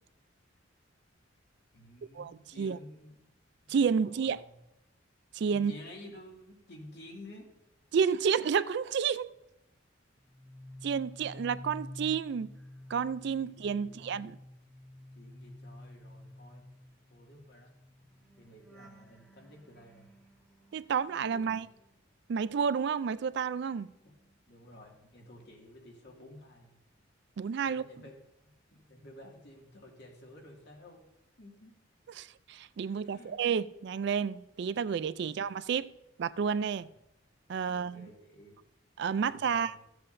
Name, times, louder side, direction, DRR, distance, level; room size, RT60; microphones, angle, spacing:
voice 1, 1.7-3.3 3.7-4.6 5.5-7.5 13.4-14.2 15.2-16.6 17.1-17.7 18.4-20.1 21.3-21.6 24.0-24.1 24.5-26.8 27.6-28.2 28.4-31.1 31.4-31.8 32.8-33.4 36.7-36.9 37.6-38.6 39.2-39.8, left 1 dB, 60° left, 2.2 m, -52 dB
voice 2, 3.7-4.4 5.3-5.7 7.9-9.3 10.8-12.5 12.9-14.4 20.7-21.7 22.3-23.9 27.4-27.8 32.2-35.9 36.2-36.9 37.5-38.1 39.0-39.7, right 6 dB, 60° right, 0.3 m, -30 dB
sound 1, 10.2-22.5 22.8-24.9 25.2-25.5, left 1 dB, 5° left, 1.5 m, -51 dB
15.0 x 7.7 x 2.6 m
head